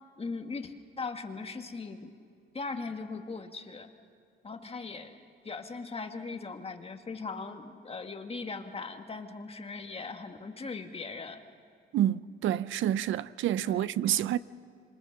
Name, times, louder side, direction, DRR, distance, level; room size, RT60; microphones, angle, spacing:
voice 1, 0.2-2.2 2.5-3.9 4.4-5.2 5.4-11.4 13.6-13.9, left 4 dB, 30° left, 1.8 m, -39 dB
voice 2, 11.9-14.4, right 11 dB, 80° right, 0.6 m, -28 dB
26.5 x 26.5 x 6.6 m
cardioid pair, 90°, 20 cm